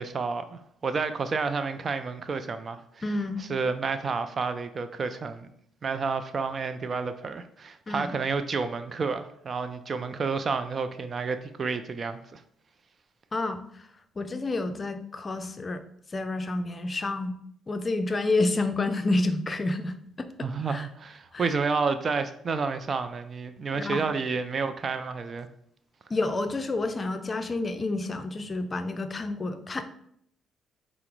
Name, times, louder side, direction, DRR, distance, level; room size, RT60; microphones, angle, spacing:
voice 1, 0.0-2.8 3.4-5.5 5.8-12.4 20.4-25.5, right 4 dB, 45° right, 10 dB, 0.4 m, -30 dB
voice 2, 3.0-3.4 7.9-8.2 13.3-13.9 14.2-15.8 16.1-17.4 17.7-20.9 21.3-21.5 23.7-24.0 26.1-29.8, left 2 dB, 35° left, 9 dB, 0.4 m, -29 dB
4.8 x 2.0 x 4.5 m, 0.69 s
supercardioid pair, 70°, 0 cm